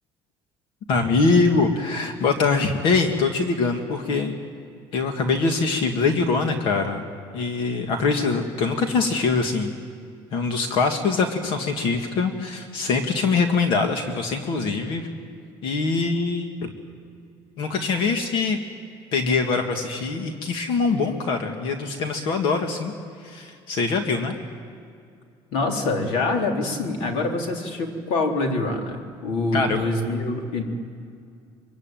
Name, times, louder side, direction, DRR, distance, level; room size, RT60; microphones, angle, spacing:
voice 1, 0.9-4.3 4.9-7.0 7.3-9.7 10.3-15.1 15.6-16.7 17.6-18.6 19.1-22.9 23.2-24.4 29.5-29.8, left 4 dB, 55° left, 5 dB, 2.0 m, -23 dB
voice 2, 25.5-30.6, left 2 dB, 75° left, 2 dB, 4.0 m, -25 dB
24.5 x 24.0 x 9.2 m, 2.3 s
cardioid pair, 175°, 10 cm